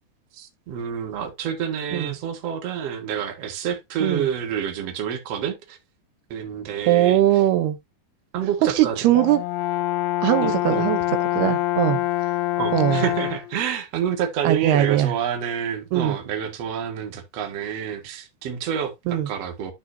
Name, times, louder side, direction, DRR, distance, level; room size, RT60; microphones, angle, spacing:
voice 1, 0.3-5.8 6.3-7.4 8.3-9.2 10.4-10.9 12.6-19.7, right 8 dB, 50° right, 2.5 m, -28 dB
voice 2, 6.9-7.8 8.6-9.4 10.2-11.0 11.3-12.0 12.7-13.0 14.4-15.1 15.9-16.2 19.1-19.3, right 13 dB, 85° right, 3.0 m, -20 dB
Brass instrument, 9.1-13.6, left 14 dB, 85° left, 2.7 m, -25 dB
12.5 x 6.0 x 2.7 m
omnidirectional pair, 4.4 m